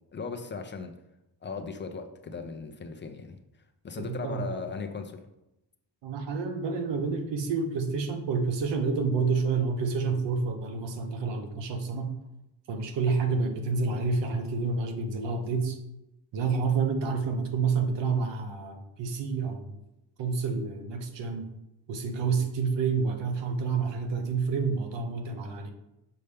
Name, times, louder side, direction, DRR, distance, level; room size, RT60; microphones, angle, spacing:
voice 1, 0.1-0.9 1.4-3.4 3.8-5.2, left 4 dB, 25° left, 5 dB, 0.5 m, -37 dB
voice 2, 4.0-4.5 6.0-12.1 12.7-15.8 16.3-19.7 20.2-21.5 21.9-25.7, right 4 dB, 85° right, 6 dB, 1.0 m, -29 dB
6.7 x 5.4 x 3.4 m, 0.90 s
wide cardioid pair, 160°, 42 cm